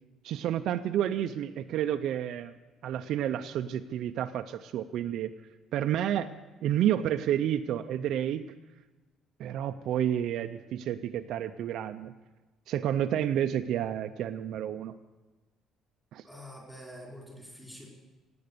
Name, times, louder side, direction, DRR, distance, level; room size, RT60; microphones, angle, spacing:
voice 1, 0.2-2.5 2.8-5.3 5.7-6.3 6.6-8.5 9.4-12.1 12.7-14.9 16.1-16.2, right 10 dB, 55° right, 8 dB, 0.4 m, -30 dB
voice 2, 16.2-17.9, equal, 5° left, -3 dB, 3.9 m, -46 dB
17.0 x 8.7 x 6.7 m, 1.2 s
cardioid pair, 175°, 0 cm